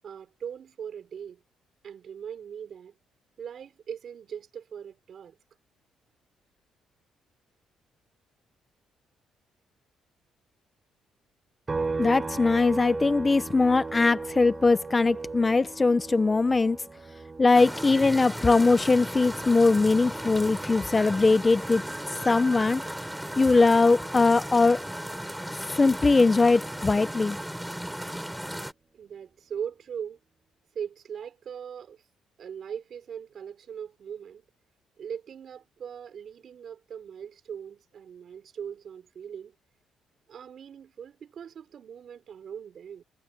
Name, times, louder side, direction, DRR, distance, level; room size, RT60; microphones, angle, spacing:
voice 1, 0.0-1.4 1.8-2.9 3.4-5.4 28.9-30.2 30.7-32.0 32.4-34.4 35.0-39.5 40.3-43.0, right 8 dB, 55° right, 4.9 m, -40 dB
sound 1, 11.7-25.2 25.6-27.8, right 4 dB, 25° right, 4.7 m, -39 dB
voice 2, 12.0-16.8 17.4-21.8 22.2-22.8 23.4-24.8 25.8-27.4, left 3 dB, 20° left, 0.8 m, -21 dB
sound 2, 17.5-28.7, equal, 5° right, 7.3 m, -36 dB
cardioid pair, 105°, 0 cm